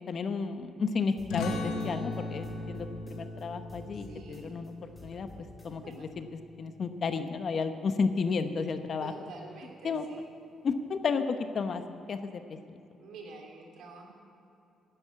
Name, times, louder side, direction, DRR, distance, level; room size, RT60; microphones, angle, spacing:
voice 1, 0.1-4.7 5.0-5.3 5.6-6.2 6.6-9.1 9.8-10.0 10.6-11.8 12.1-12.6, left 5 dB, 50° left, 8 dB, 0.9 m, -32 dB
sound 1, 1.2-3.4 3.7-6.0, left 1 dB, 10° left, 3.0 m, -52 dB
sound 2, 1.3-6.5, left 2 dB, 85° left, 1.2 m, -38 dB
voice 2, 3.9-4.7 5.0-5.2 5.7-6.1 9.0-10.3 13.0-14.2, right 3 dB, 80° right, 1 dB, 2.7 m, -48 dB
11.0 x 9.6 x 8.3 m, 2.9 s
cardioid pair, 90°, 0 cm